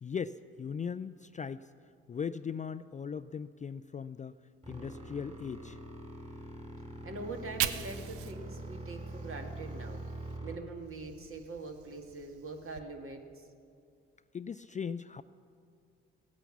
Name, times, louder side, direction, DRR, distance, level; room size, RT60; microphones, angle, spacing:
voice 1, 0.0-1.7 2.1-4.4 4.7-5.8 14.3-15.2, left 6 dB, 25° left, 12 dB, 0.4 m, -38 dB
sound 1, 4.6-10.6, right 1 dB, 20° right, 3.2 m, -44 dB
voice 2, 6.7-10.0 10.4-13.5, right 3 dB, 45° right, 3 dB, 2.0 m, -43 dB
Fire, 7.2-10.4 10.7-12.8, right 11 dB, 75° right, 0.6 m, -41 dB
17.0 x 9.0 x 7.2 m, 2.3 s
hypercardioid pair, 45°, 30 cm